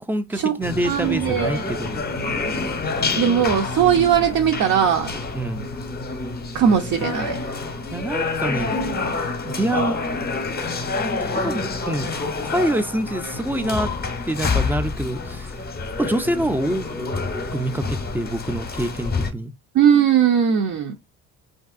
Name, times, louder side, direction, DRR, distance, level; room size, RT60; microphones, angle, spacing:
voice 1, 0.0-2.0 5.3-5.7 7.9-8.8 9.4-10.0 11.2-12.1 12.4-13.9 14.3-15.6 16.0-16.9 17.5-19.5, right 1 dB, 5° right, 0.4 m, -26 dB
sound 1, 0.6-19.3, left 3 dB, 25° left, 0.7 m, -27 dB
voice 2, 0.8-1.6 3.2-5.2 6.5-7.4 19.7-20.9, right 8 dB, 55° right, 0.6 m, -19 dB
2.8 x 2.6 x 2.4 m
supercardioid pair, 85°, 36 cm